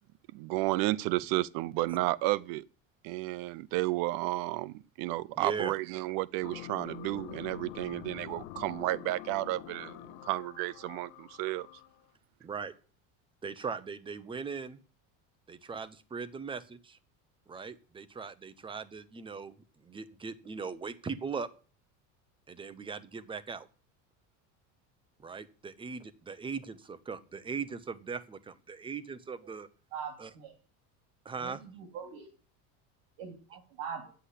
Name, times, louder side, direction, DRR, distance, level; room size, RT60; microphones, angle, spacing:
voice 1, 0.3-2.6 3.0-11.7, right 18 dB, 60° right, 0.6 m, -32 dB
voice 2, 5.4-5.7 12.4-12.7 13.4-14.8 15.5-17.0 17.5-19.6 19.8-21.5 22.5-23.7 25.2-29.7 30.2-30.3 31.2-31.6, right 5 dB, 15° right, 0.8 m, -39 dB
sound 1, 6.4-12.1, left 15 dB, 80° left, 1.0 m, -46 dB
voice 3, 29.9-30.5 31.4-32.3 33.2-34.1, right 7 dB, 75° right, 3.5 m, -42 dB
10.0 x 7.9 x 8.3 m
cardioid pair, 155°, 38 cm